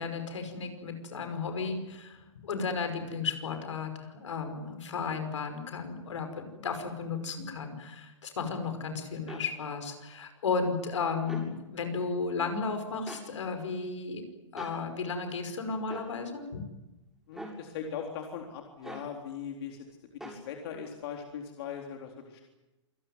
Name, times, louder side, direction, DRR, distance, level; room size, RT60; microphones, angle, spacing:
voice 1, 0.0-14.3 14.5-16.6, left 4 dB, 75° left, 7 dB, 5.5 m, -34 dB
sound 1, 9.3-9.5 11.2-11.5 13.1-13.3 14.6-14.8 15.9-16.1 17.3-17.6 18.8-19.1 20.2-20.4, right 1 dB, 5° right, 7.7 m, -42 dB
voice 2, 17.3-19.8 20.2-22.5, left 7 dB, 55° left, 2 dB, 3.8 m, -40 dB
27.5 x 18.5 x 9.4 m, 1.0 s
hypercardioid pair, 120°, 16 cm